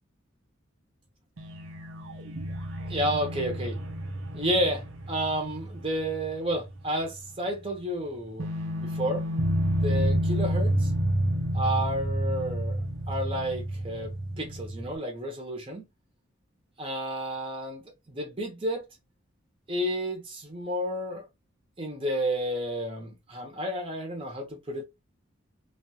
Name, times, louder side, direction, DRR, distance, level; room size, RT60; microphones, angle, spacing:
sound 1, 1.4-6.8 7.1-7.2 8.4-15.0, right 1 dB, 70° right, 0.7 m, -30 dB
voice 1, 2.9-3.8 4.3-8.5 8.8-9.2 9.8-10.9 11.5-12.8 13.1-15.9 16.8-18.8 19.7-21.3 21.8-24.8, equal, 25° right, 0.8 m, -31 dB
2.4 x 2.3 x 2.8 m
head